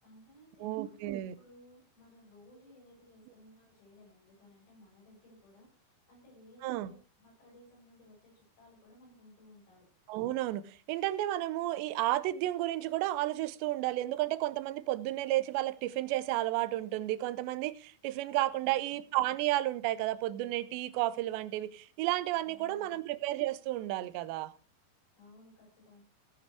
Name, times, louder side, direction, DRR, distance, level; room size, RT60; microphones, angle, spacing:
voice 1, 0.0-9.8 18.5-18.8 22.4-23.0 25.2-26.0, left 1 dB, 90° left, 10.0 m, -59 dB
voice 2, 0.6-1.3 6.6-6.9 10.1-24.5, right 15 dB, 80° right, 2.9 m, -32 dB
16.0 x 8.6 x 4.9 m
omnidirectional pair, 5.2 m